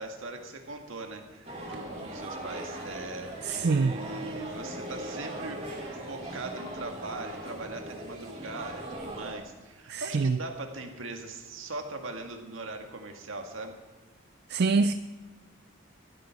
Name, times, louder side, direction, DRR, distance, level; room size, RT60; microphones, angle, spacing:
voice 1, 0.0-5.8 6.1-13.7, right 2 dB, 75° right, 4 dB, 2.0 m, -40 dB
sound 1, 1.4-9.3, right 1 dB, 35° right, 3.4 m, -39 dB
voice 2, 3.4-3.9 9.9-10.4 14.5-14.9, right 4 dB, 55° right, 12 dB, 0.4 m, -25 dB
14.0 x 12.5 x 4.8 m, 1.3 s
head